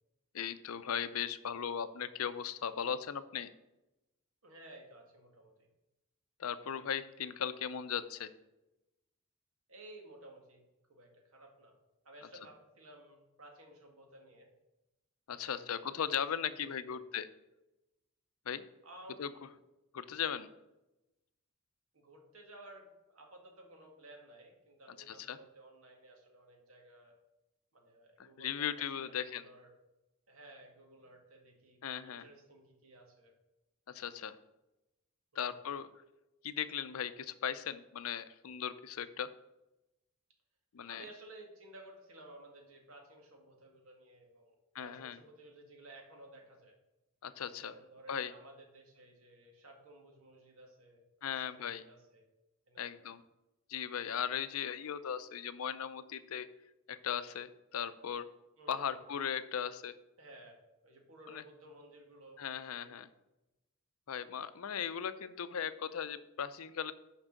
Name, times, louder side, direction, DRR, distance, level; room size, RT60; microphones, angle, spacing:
voice 1, 0.3-3.5 6.4-8.3 15.3-17.3 18.5-18.6 19.2-19.3 19.9-20.5 25.1-25.4 28.4-29.5 31.8-32.3 33.9-34.4 35.4-35.9 36.4-39.3 40.7-41.0 44.7-45.2 47.2-47.7 48.1-48.3 51.2-51.8 52.8-53.2 53.7-56.5 56.9-58.3 58.7-59.9 61.3-61.4 62.4-63.1 64.1-66.9, left 8 dB, 75° left, 14 dB, 0.5 m, -38 dB
voice 2, 4.4-5.7 9.7-10.6 10.9-11.8 12.1-14.5 15.3-17.0 18.8-19.5 21.9-27.2 27.7-29.7 30.3-33.3 35.3-35.6 40.9-46.8 47.6-51.0 51.3-52.3 52.7-52.9 58.6-59.0 60.2-63.0, right 1 dB, 75° right, 1 dB, 1.8 m, -56 dB
6.1 x 5.4 x 6.5 m, 0.97 s
head